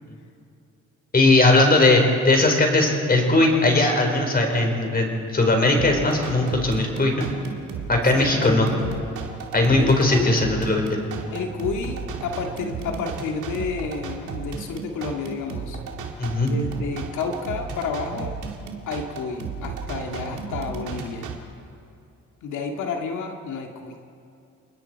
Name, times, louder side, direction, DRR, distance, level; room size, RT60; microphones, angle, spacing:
voice 1, 1.1-7.3 7.9-8.7 9.5-11.1 16.2-16.5, left 2 dB, 30° left, 2 dB, 4.8 m, -19 dB
sound 1, 5.7-21.4, right 5 dB, 85° right, 2.4 m, -34 dB
voice 2, 8.1-8.5 9.8-10.4 11.3-15.8 16.4-18.3 18.9-21.3 22.4-23.9, left 5 dB, 75° left, 2 dB, 2.1 m, -30 dB
28.5 x 20.5 x 4.7 m, 2.6 s
cardioid pair, 90°, 30 cm